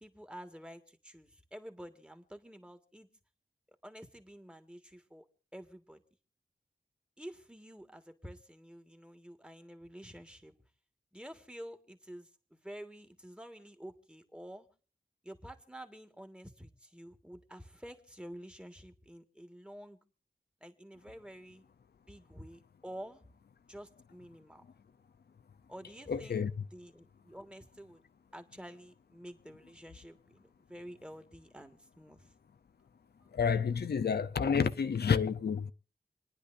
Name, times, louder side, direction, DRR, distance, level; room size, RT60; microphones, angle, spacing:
voice 1, 0.0-3.1 3.8-5.2 5.5-6.0 7.2-10.5 11.1-14.7 15.2-20.0 20.6-21.6 22.1-23.3 23.7-24.7 25.7-26.4 26.7-28.0 28.3-32.3, equal, 5° right, 1.7 m, -49 dB
voice 2, 26.1-26.5 33.3-35.7, left 6 dB, 90° left, 0.6 m, -29 dB
28.5 x 10.0 x 2.6 m
wide cardioid pair, 80°, 16 cm